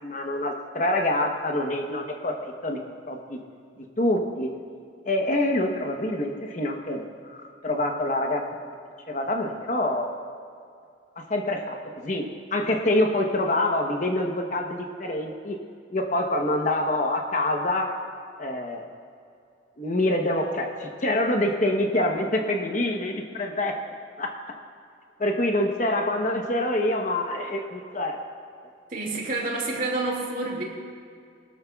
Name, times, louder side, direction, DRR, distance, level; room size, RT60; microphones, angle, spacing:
voice 1, 0.0-2.8 3.1-3.4 3.8-4.5 5.1-8.4 9.1-10.1 11.2-15.6 15.9-17.9 18.4-18.8 19.8-23.8 24.2-24.5 25.2-28.2, left 1 dB, 40° left, 3 dB, 0.9 m, -26 dB
voice 2, 28.9-30.6, right 2 dB, 40° right, -1 dB, 2.3 m, -28 dB
22.0 x 13.0 x 2.4 m, 2.4 s
head